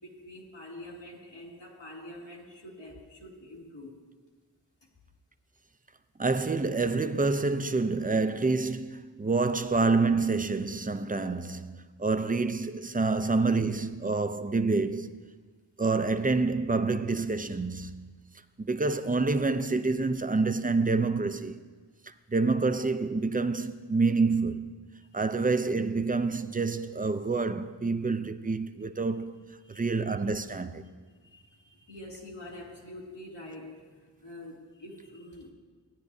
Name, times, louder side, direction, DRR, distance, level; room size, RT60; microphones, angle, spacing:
voice 1, 0.0-4.0 29.6-30.1 31.0-35.5, left 1 dB, 80° left, 2.2 m, -46 dB
voice 2, 6.2-15.1 15.8-18.1 18.6-21.6 22.3-24.7 25.1-29.4 29.7-30.8, right 3 dB, 20° right, 0.5 m, -27 dB
16.5 x 9.8 x 2.7 m
wide cardioid pair, 40°, 42 cm